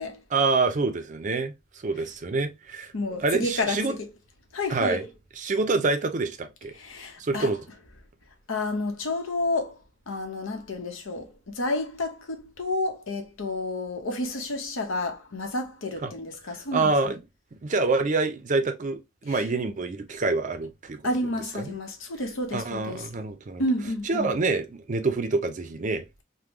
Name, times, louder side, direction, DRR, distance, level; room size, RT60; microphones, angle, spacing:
voice 1, 0.3-1.5 1.8-2.9 3.2-3.9 4.7-5.0 5.4-6.7 7.2-7.6 16.0-16.1 16.7-17.2 17.6-21.0 21.5-21.7 22.5-23.6 24.0-26.0, right 3 dB, 40° right, 0.5 m, -26 dB
voice 2, 2.9-4.1 4.5-5.1 6.7-7.5 8.5-9.8 10.1-16.9 19.3-19.4 21.0-23.0 23.6-24.3, left 2 dB, 90° left, 0.8 m, -30 dB
3.6 x 2.1 x 3.0 m
head